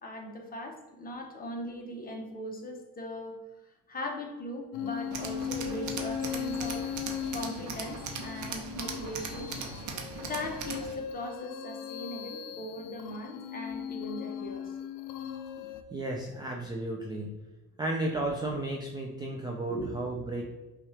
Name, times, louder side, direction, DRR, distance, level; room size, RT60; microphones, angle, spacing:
voice 1, 0.0-3.4 3.9-6.9 7.3-9.5 10.2-14.7 19.7-19.9, left 1 dB, 25° left, 1 dB, 0.8 m, -39 dB
sound 1, 4.7-15.8, left 9 dB, 80° left, 0.5 m, -38 dB
Tools, 5.1-11.0, right 5 dB, 50° right, 0.7 m, -39 dB
voice 2, 15.9-17.3 17.8-20.4, right 2 dB, 10° right, -1 dB, 0.3 m, -33 dB
5.7 x 2.4 x 3.2 m, 1.1 s
cardioid pair, 120°, 38 cm